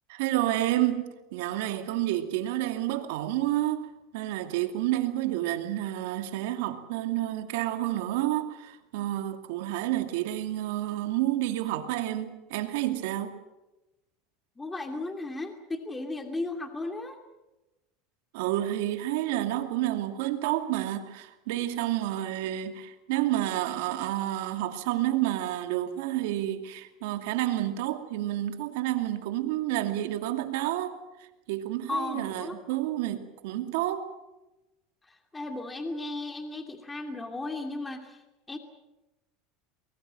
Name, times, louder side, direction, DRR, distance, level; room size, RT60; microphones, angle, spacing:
voice 1, 0.1-13.4 18.3-31.0 31.5-34.1, right 14 dB, 75° right, 2.5 m, -29 dB
voice 2, 14.6-17.2 31.9-32.6 35.0-38.2 38.5-38.6, left 2 dB, 15° left, 2.6 m, -35 dB
23.5 x 21.5 x 7.7 m
supercardioid pair, 115°, 0 cm